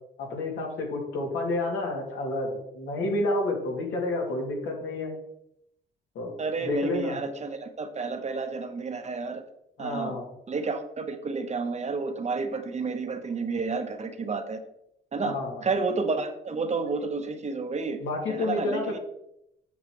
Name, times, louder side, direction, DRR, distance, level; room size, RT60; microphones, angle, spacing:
voice 1, 0.2-5.1 6.2-6.3 6.6-7.2 9.8-10.2 15.2-15.6 18.0-19.0, left 2 dB, 80° left, -1 dB, 2.2 m, -30 dB
voice 2, 6.4-9.4 9.8-10.2 10.5-14.6 15.1-15.3 15.6-18.0 18.3-19.0, right 4 dB, 35° right, 8 dB, 0.9 m, -30 dB
8.4 x 6.3 x 3.0 m, 0.80 s
cardioid pair, 90°, 20 cm